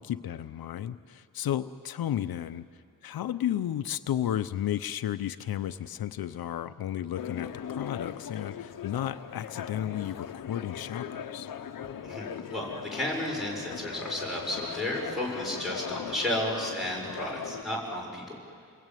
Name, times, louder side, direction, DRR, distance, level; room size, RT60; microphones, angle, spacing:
voice 1, 0.0-2.7 3.0-11.5, left 11 dB, 85° left, 10 dB, 0.7 m, -33 dB
sound 1, 7.2-17.6, left 8 dB, 65° left, 1.0 m, -39 dB
voice 2, 12.0-18.4, left 1 dB, ahead, -3 dB, 6.1 m, -33 dB
29.0 x 20.5 x 9.2 m, 2.3 s
wide cardioid pair, 145°, 35 cm